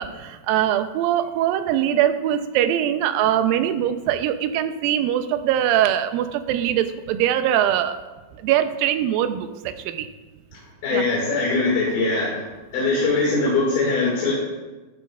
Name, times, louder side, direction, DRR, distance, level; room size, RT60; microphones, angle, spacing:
voice 1, 0.0-8.0 8.4-10.1 10.9-11.0, right 11 dB, 80° right, 9 dB, 2.3 m, -22 dB
voice 2, 10.5-12.5 12.7-14.3, left 3 dB, 80° left, -5 dB, 3.9 m, -22 dB
15.0 x 11.5 x 2.4 m, 1.2 s
omnidirectional pair, 4.3 m